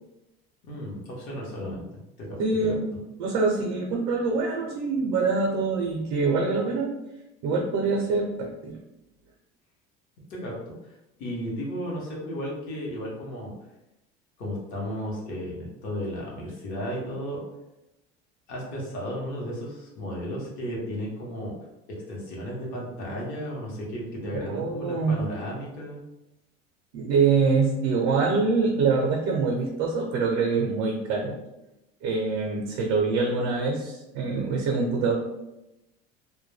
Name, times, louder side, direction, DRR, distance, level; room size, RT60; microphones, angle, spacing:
voice 1, 0.6-1.8 2.2-2.8 10.3-10.7 11.2-13.5 14.4-17.4 18.5-21.5 21.9-26.0, equal, 45° left, -3 dB, 0.8 m, -34 dB
voice 2, 2.4-2.9 3.2-6.9 7.4-8.8 24.3-25.2 26.9-31.4 32.0-35.2, right 4 dB, 80° right, 0 dB, 0.5 m, -25 dB
2.1 x 2.1 x 3.1 m, 0.94 s
cardioid pair, 170°, 19 cm